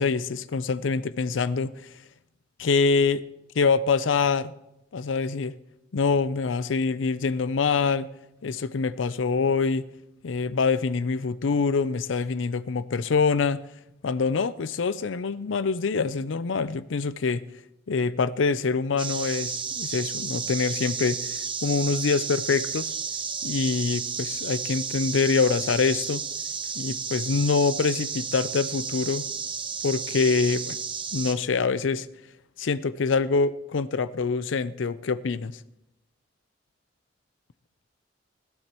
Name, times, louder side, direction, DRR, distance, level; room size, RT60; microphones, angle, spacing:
voice 1, 0.0-1.9 2.6-3.2 3.6-4.5 4.9-5.5 5.9-8.1 8.4-9.9 10.2-13.6 14.0-17.4 17.9-22.9 23.4-26.2 26.8-29.3 29.8-30.8 31.1-32.1 32.6-35.6, left 4 dB, 90° left, 0.5 m, -25 dB
sound 1, 19.0-31.3, right 6 dB, 25° right, 1.0 m, -32 dB
20.5 x 15.0 x 3.0 m
head